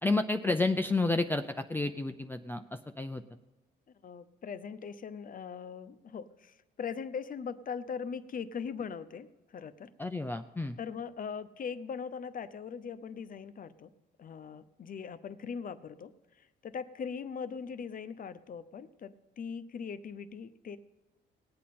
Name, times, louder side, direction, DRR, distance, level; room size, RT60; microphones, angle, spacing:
voice 1, 0.0-3.2 10.0-10.8, left 2 dB, 10° left, 7 dB, 0.5 m, -30 dB
voice 2, 4.0-9.3 9.5-9.9 10.8-13.9 14.2-16.1 16.6-20.8, left 6 dB, 45° left, 14 dB, 0.7 m, -40 dB
19.0 x 8.5 x 4.3 m, 1.0 s
cardioid pair, 90°, 20 cm